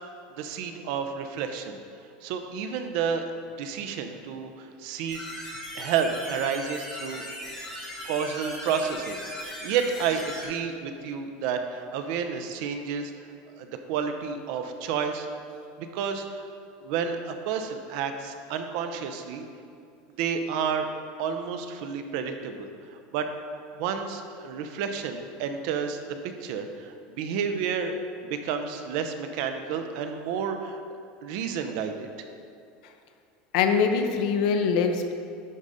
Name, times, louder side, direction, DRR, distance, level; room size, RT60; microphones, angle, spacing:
voice 1, 0.3-1.8 2.2-3.3 3.6-5.2 5.7-7.2 8.1-13.1 13.6-15.3 15.8-16.5 16.8-19.4 20.2-20.9 21.2-23.3 23.8-26.0 26.4-27.9 28.2-30.8 31.2-32.1, right 6 dB, 55° right, 7 dB, 0.7 m, -30 dB
sound 1, 5.1-10.4, left 1 dB, 5° left, 2.0 m, -38 dB
voice 2, 33.5-35.1, left 6 dB, 65° left, 6 dB, 0.7 m, -23 dB
11.0 x 4.0 x 5.0 m, 2.5 s
cardioid pair, 175°, 4 cm